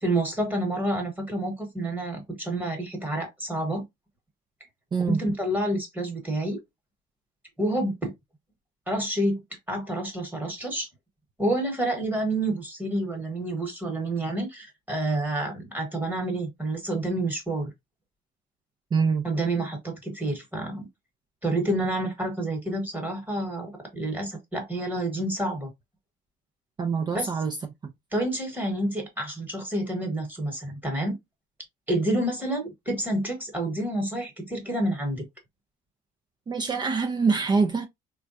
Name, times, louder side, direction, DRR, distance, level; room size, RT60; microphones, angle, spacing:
voice 1, 0.0-3.8 5.1-6.6 7.6-8.1 8.9-9.4 9.7-10.9 11.4-17.7 19.2-20.9 21.4-25.7 27.1-27.3 28.1-31.2 31.9-35.3, right 1 dB, 10° right, 1.2 m, -28 dB
voice 2, 18.9-19.3 26.8-27.6 27.8-27.9 36.5-37.9, right 5 dB, 25° right, 0.4 m, -24 dB
3.3 x 2.2 x 2.5 m
cardioid pair, 110°, 17 cm